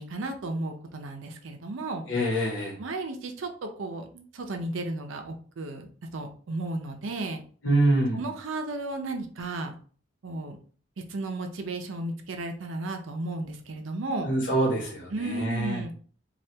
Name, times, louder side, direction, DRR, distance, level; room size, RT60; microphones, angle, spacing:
voice 1, 0.0-2.1 2.8-5.9 6.1-7.4 8.1-9.7 10.2-10.6 11.1-14.3 15.1-15.9, right 2 dB, 85° right, 5 dB, 0.6 m, -34 dB
voice 2, 2.1-2.8 7.6-8.2 14.2-15.8, right 1 dB, 70° left, -3 dB, 1.1 m, -25 dB
2.7 x 2.4 x 3.3 m, 0.43 s
head